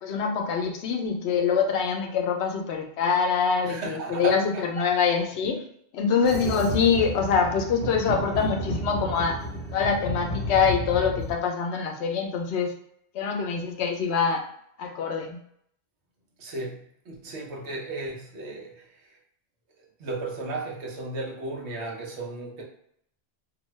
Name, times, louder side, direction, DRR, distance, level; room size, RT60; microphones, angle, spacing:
voice 1, 0.0-5.6 5.9-9.4 9.7-12.7 13.1-14.4 14.8-15.4, left 6 dB, 80° left, 3 dB, 0.8 m, -25 dB
voice 2, 3.6-4.9 16.4-19.2 20.0-22.6, right 3 dB, 90° right, -1 dB, 1.0 m, -35 dB
sound 1, 6.2-11.3, equal, 50° left, 0.8 m, -32 dB
2.6 x 2.2 x 3.0 m, 0.70 s
omnidirectional pair, 1.1 m